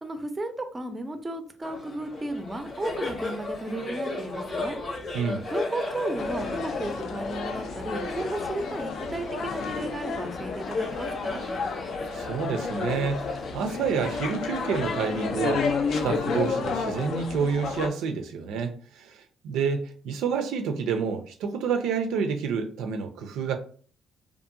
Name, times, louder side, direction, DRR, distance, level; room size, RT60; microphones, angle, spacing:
voice 1, 0.0-4.8 5.5-11.5, right 2 dB, 20° right, 0.5 m, -34 dB
Laughter, 1.6-16.6, left 2 dB, 55° left, 0.8 m, -36 dB
voice 2, 5.1-5.5 12.1-13.2 13.5-23.6, right 6 dB, 90° right, 0.4 m, -29 dB
sound 1, 6.2-17.9, left 5 dB, 70° left, 0.4 m, -31 dB
2.6 x 2.4 x 2.6 m
cardioid pair, 90°, 0 cm